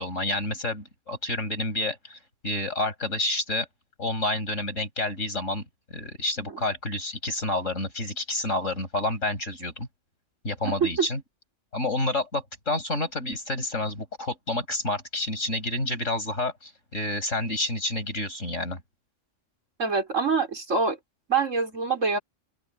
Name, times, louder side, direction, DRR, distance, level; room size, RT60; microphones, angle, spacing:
voice 1, 0.0-2.2 2.4-3.7 4.0-5.7 5.9-9.9 10.4-11.2 11.7-18.8, left 2 dB, 80° left, 6.9 m, -29 dB
voice 2, 10.6-11.1 19.8-21.0 21.3-22.2, right 5 dB, 85° right, 4.2 m, -25 dB
open air
omnidirectional pair, 1.3 m